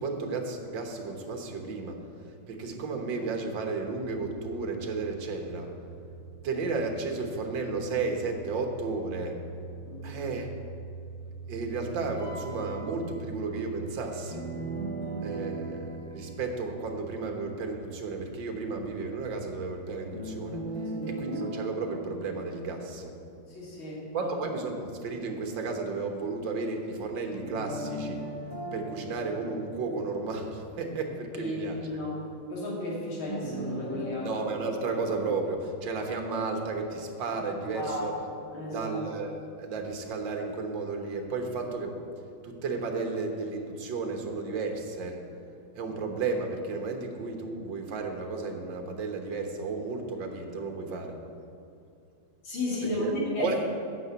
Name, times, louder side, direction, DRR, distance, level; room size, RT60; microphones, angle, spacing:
voice 1, 0.0-2.0 2.5-5.7 6.4-9.4 10.0-10.5 11.5-14.5 15.2-20.6 21.1-23.1 24.1-28.3 28.7-31.9 34.2-38.1 38.7-42.0 42.4-45.2 45.8-51.2 53.0-53.1 53.4-53.5, right 4 dB, 65° right, 3 dB, 1.8 m, -33 dB
sound 1, 3.8-19.8, right 4 dB, 30° right, 3.0 m, -45 dB
voice 2, 9.8-10.2 20.9-21.1 23.5-24.4 31.4-34.3 37.7-39.0 52.4-53.6, left 2 dB, 70° left, -6 dB, 3.4 m, -34 dB
Wind instrument woodwind instrument, 12.1-16.8, right 1 dB, ahead, 1.9 m, -52 dB
sound 2, 14.3-17.4 20.1-23.4 27.5-30.6 33.3-34.1, right 1 dB, 30° left, 2.4 m, -38 dB
9.8 x 6.0 x 8.1 m, 2.6 s
omnidirectional pair, 2.4 m